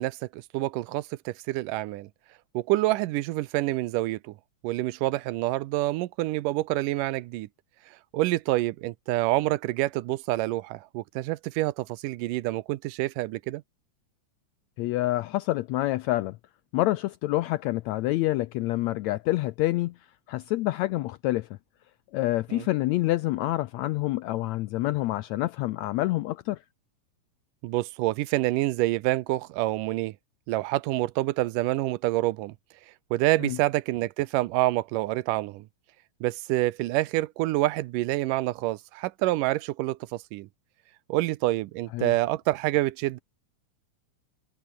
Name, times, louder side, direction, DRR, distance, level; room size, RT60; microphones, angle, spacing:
voice 1, 0.0-2.1 2.5-4.3 4.6-7.5 8.1-13.6 22.5-22.7 27.6-30.1 30.5-32.5 33.1-35.7 36.2-40.0 40.3-40.5 41.1-43.2, right 18 dB, 85° right, 2.3 m, -27 dB
voice 2, 14.8-16.4 16.7-19.9 20.3-21.5 22.1-26.6 33.4-33.6 41.9-42.1, left 17 dB, 85° left, 1.6 m, -27 dB
omnidirectional pair, 3.7 m